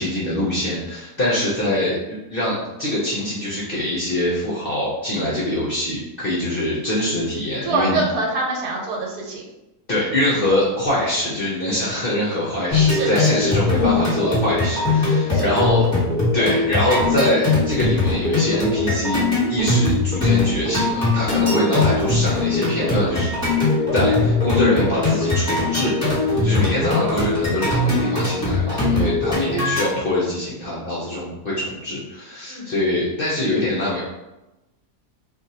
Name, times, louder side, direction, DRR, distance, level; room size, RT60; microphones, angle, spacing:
voice 1, 0.0-8.0 9.9-15.8 16.3-19.2 19.5-23.3 23.9-34.0, left 1 dB, 55° left, -7 dB, 0.6 m, -24 dB
voice 2, 7.6-9.5 12.7-13.6 15.3-15.6 29.4-29.5 32.5-32.7, right 2 dB, 75° right, -1 dB, 1.3 m, -26 dB
sound 1, 12.7-29.9, left 3 dB, 10° left, 1.2 m, -20 dB
2.6 x 2.5 x 4.1 m, 1.0 s
omnidirectional pair, 1.7 m